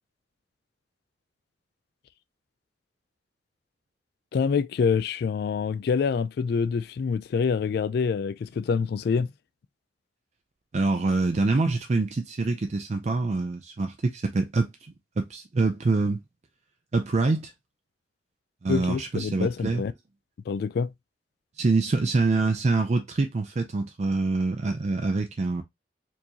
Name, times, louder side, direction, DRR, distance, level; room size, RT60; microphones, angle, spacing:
voice 1, 4.3-9.3 18.7-19.9 20.5-20.9, left 5 dB, 60° left, 0.3 m, -26 dB
voice 2, 10.7-14.7 15.2-16.2 16.9-17.5 18.6-19.8 21.6-25.6, right 3 dB, 40° right, 0.4 m, -25 dB
4.5 x 3.0 x 2.7 m
head